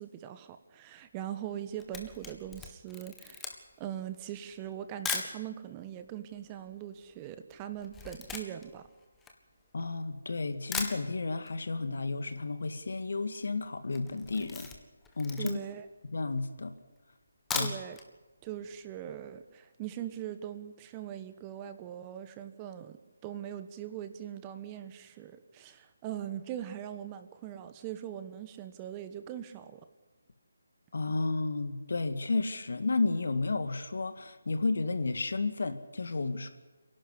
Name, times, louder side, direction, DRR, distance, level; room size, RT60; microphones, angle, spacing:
voice 1, 0.0-3.5 3.8-8.8 15.4-15.8 17.6-18.0 18.4-29.9, right 11 dB, 20° right, 10 dB, 1.2 m, -41 dB
Camera, 1.5-5.4 6.1-6.2 6.4-10.0 10.4-10.5 10.7-11.6 11.8-11.9 12.2-12.3 12.5-12.9 13.3-13.5 13.9-15.9 16.4-16.5 17.3-18.1 18.4-18.5 18.9-19.0, left 5 dB, 10° left, 1.7 m, -39 dB
voice 2, 9.7-14.7 15.2-15.6 16.0-16.7 17.5-17.7 30.9-36.5, left 3 dB, 65° left, 9 dB, 2.0 m, -32 dB
26.5 x 12.0 x 10.0 m, 1.1 s
figure-of-eight pair, 155°, 0 cm